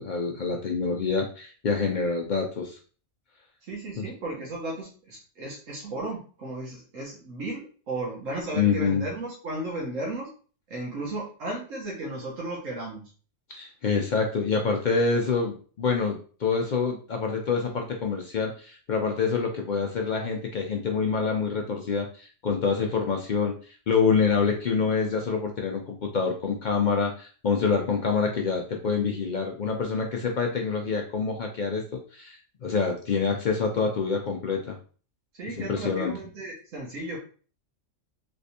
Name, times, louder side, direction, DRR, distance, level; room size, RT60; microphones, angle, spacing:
voice 1, 0.0-2.8 4.0-4.1 8.5-9.1 13.5-23.5 23.9-31.8 32.1-34.8 35.6-36.1, left 5 dB, 60° left, 2 dB, 0.5 m, -26 dB
voice 2, 3.6-10.3 10.7-13.1 35.4-37.2, right 2 dB, 80° right, -2 dB, 1.3 m, -35 dB
3.4 x 3.2 x 2.7 m, 0.40 s
omnidirectional pair, 1.3 m